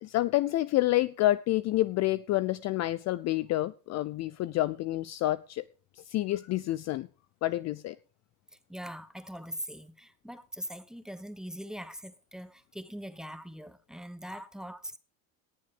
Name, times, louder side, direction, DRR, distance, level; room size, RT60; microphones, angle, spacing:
voice 1, 0.0-5.6 6.0-7.1 7.4-8.0, left 16 dB, 40° left, 0.5 m, -28 dB
voice 2, 8.7-15.0, equal, ahead, 1.1 m, -42 dB
18.0 x 7.4 x 5.1 m
supercardioid pair, 100°, 44 cm